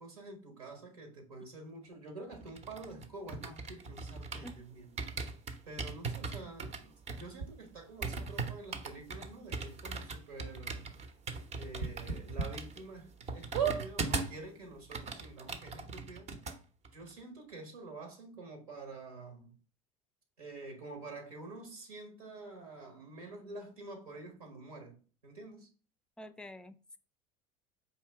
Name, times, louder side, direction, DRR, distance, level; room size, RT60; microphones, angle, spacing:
voice 1, 0.0-4.9 5.6-10.9 11.5-16.3 16.9-19.6 20.4-25.7, right 2 dB, 85° right, 1.2 m, -48 dB
sound 1, 2.3-4.6 5.0-14.4 14.7-16.6 16.8-17.1, right 4 dB, 35° right, 0.7 m, -40 dB
sound 2, 7.4-7.5 8.0-8.1 9.1-9.2 9.5-9.6 10.0-10.1 11.8-12.5 13.0-13.1 13.5-13.8 14.6-14.7 14.9-15.0, right 6 dB, 70° right, 0.9 m, -33 dB
voice 2, 26.2-27.0, equal, 5° left, 0.4 m, -48 dB
4.7 x 2.7 x 3.3 m
hypercardioid pair, 75°, 18 cm